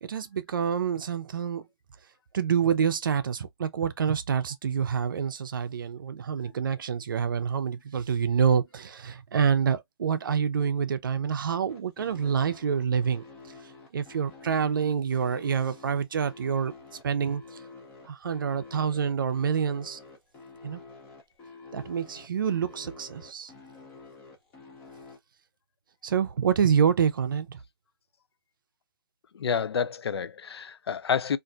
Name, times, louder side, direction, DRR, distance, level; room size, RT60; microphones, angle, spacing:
voice 1, 0.0-1.6 2.3-13.2 13.9-16.7 17.0-17.4 18.1-20.0 20.6-20.8 21.7-23.5 26.0-27.6, right 7 dB, 55° right, 0.5 m, -27 dB
sound 1, 11.7-25.2, left 3 dB, 10° left, 0.5 m, -48 dB
voice 2, 29.3-31.4, left 7 dB, 80° left, 0.4 m, -29 dB
3.8 x 2.5 x 2.2 m
hypercardioid pair, 170°, 13 cm